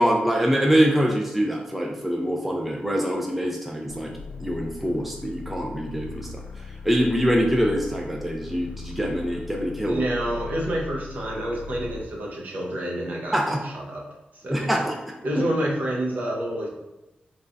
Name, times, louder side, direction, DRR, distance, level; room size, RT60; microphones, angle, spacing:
voice 1, 0.0-4.1 4.4-6.4 6.8-10.0 13.3-13.6 14.5-14.9, equal, 5° right, 0 dB, 0.3 m, -24 dB
sound 1, 3.9-12.1, left 4 dB, 85° left, 0.4 m, -38 dB
voice 2, 9.8-13.4 13.6-14.0 14.3-14.9 15.2-16.7, right 1 dB, 60° right, -2 dB, 0.9 m, -28 dB
3.2 x 2.2 x 3.8 m, 1.0 s
wide cardioid pair, 170°, 3 cm